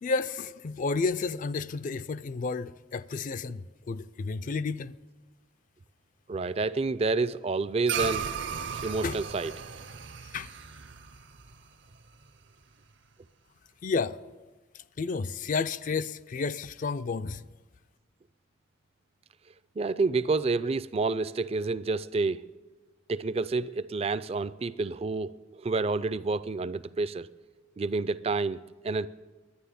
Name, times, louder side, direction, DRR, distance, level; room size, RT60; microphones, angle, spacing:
voice 1, 0.0-5.0 9.0-9.2 10.3-10.5 13.8-14.2 14.7-17.4, left 4 dB, 40° left, 0.4 m, -31 dB
voice 2, 6.3-8.3 8.8-9.5 19.8-22.4 23.1-27.3 27.8-29.1, right 3 dB, 30° right, 0.4 m, -29 dB
sound 1, 7.9-12.5, right 6 dB, 60° right, 0.7 m, -36 dB
11.5 x 9.9 x 10.0 m
head